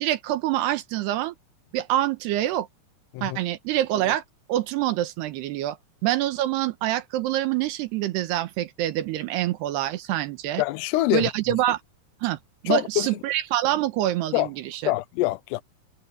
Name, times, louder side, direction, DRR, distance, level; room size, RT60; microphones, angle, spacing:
voice 1, 0.0-1.3 1.7-2.7 3.2-4.2 4.5-5.8 6.0-10.6 11.1-11.8 12.2-12.4 12.6-14.9, right 14 dB, 80° right, 3.2 m, -26 dB
voice 2, 10.6-11.3 12.7-13.1 14.3-14.5 14.8-15.6, left 17 dB, 80° left, 2.8 m, -24 dB
omnidirectional pair, 4.9 m